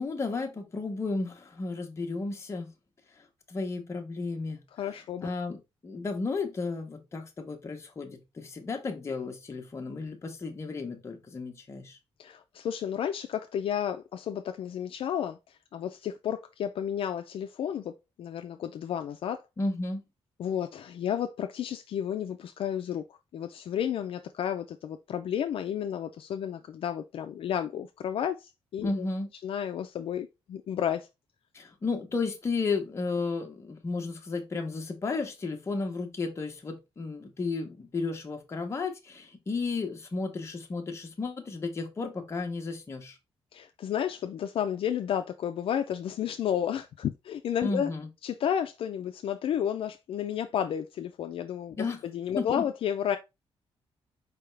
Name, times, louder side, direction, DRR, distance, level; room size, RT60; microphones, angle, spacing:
voice 1, 0.0-2.7 3.5-5.6 5.8-12.0 19.6-20.0 28.8-29.3 31.5-43.2 47.6-48.1 51.8-52.0 52.4-52.6, left 3 dB, 25° left, 1.0 m, -33 dB
voice 2, 4.8-5.3 12.2-19.4 20.4-23.0 23.3-29.1 29.4-31.1 43.5-47.9 48.2-51.8 52.0-53.2, left 9 dB, 60° left, 0.4 m, -32 dB
4.7 x 3.5 x 3.2 m
wide cardioid pair, 160°, 10 cm